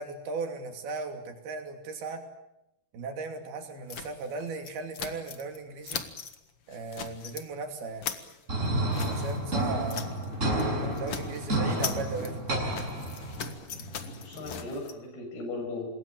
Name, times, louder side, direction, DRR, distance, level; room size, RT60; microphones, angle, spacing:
voice 1, 0.0-2.3 2.9-6.1 6.7-8.1 9.0-10.1 10.8-12.8, right 4 dB, 70° right, 5 dB, 4.8 m, -37 dB
sound 1, 3.9-5.6 5.8-6.4 6.7-7.5 7.8-10.3 10.5-10.7 11.0-14.9, left 7 dB, 50° left, 1.8 m, -40 dB
sound 2, 8.5-13.5, right 1 dB, 15° right, 7.4 m, -30 dB
sound 3, 9.2-14.8, equal, 85° left, 6.6 m, -44 dB
voice 2, 11.5-11.9 12.2-12.3 14.2-15.9, left 2 dB, 70° left, 4 dB, 8.9 m, -38 dB
27.0 x 21.0 x 9.1 m, 0.91 s
omnidirectional pair, 4.7 m